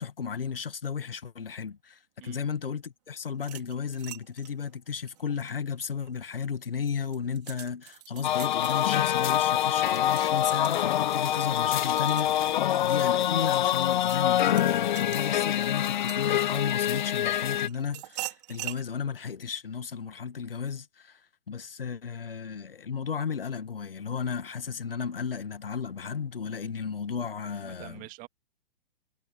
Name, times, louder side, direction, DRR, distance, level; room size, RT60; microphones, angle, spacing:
voice 1, 0.0-21.2 21.5-28.0, left 6 dB, 70° left, 2.0 m, -34 dB
sound 1, 3.3-6.2 6.7-16.8 17.3-18.8, right 16 dB, 45° right, 3.6 m, -44 dB
sound 2, 8.2-17.7, left 11 dB, 55° left, 0.4 m, -25 dB
voice 2, 27.6-28.3, right 22 dB, 30° right, 2.2 m, -46 dB
figure-of-eight pair, 115°, 29 cm